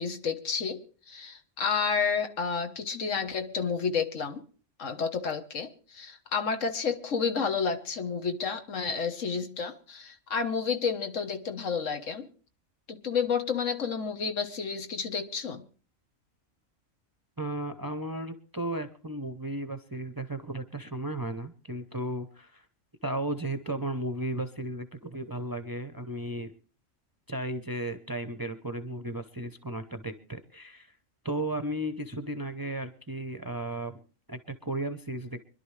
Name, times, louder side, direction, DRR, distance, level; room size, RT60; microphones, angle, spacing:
voice 1, 0.0-4.4 4.8-12.3 12.9-15.6, left 5 dB, 70° left, 1.6 m, -30 dB
voice 2, 17.4-22.7 23.0-26.5 27.3-30.9 31.2-34.0 34.3-35.4, right 1 dB, 20° right, 0.7 m, -35 dB
25.0 x 11.5 x 3.3 m
omnidirectional pair, 1.3 m